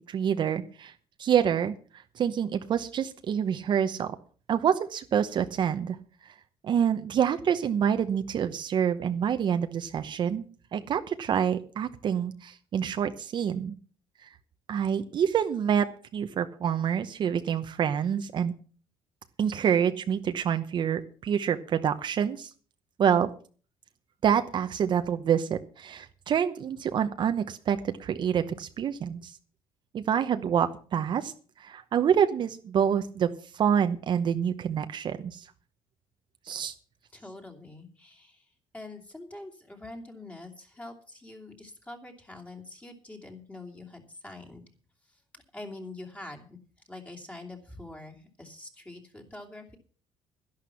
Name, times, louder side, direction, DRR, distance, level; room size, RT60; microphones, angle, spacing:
voice 1, 0.1-0.9 1.2-1.7 2.2-4.1 4.5-6.0 6.6-10.4 10.7-13.7 14.7-18.5 19.4-22.5 23.0-23.3 24.2-29.3 29.9-31.3 31.6-35.4 36.5-36.7, right 8 dB, 45° right, 8 dB, 0.9 m, -27 dB
voice 2, 37.1-38.4 38.7-44.6 45.5-46.6 46.9-49.8, left 2 dB, 15° left, 3 dB, 2.9 m, -44 dB
11.5 x 11.5 x 5.8 m, 0.42 s
cardioid pair, 115°, 11 cm